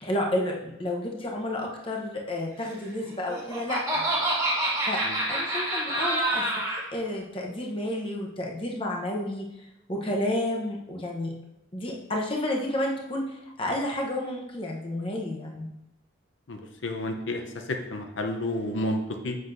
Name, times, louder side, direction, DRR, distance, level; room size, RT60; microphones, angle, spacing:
voice 1, 0.0-4.1 4.8-5.0 5.3-9.5 9.9-11.3 11.7-13.2 13.6-15.7, left 1 dB, 25° left, -1 dB, 0.8 m, -31 dB
Laughter, 3.1-6.8, right 1 dB, 15° right, 1.4 m, -27 dB
voice 2, 16.5-19.4, left 1 dB, 80° left, 4 dB, 0.7 m, -31 dB
7.6 x 6.1 x 2.6 m, 0.87 s
head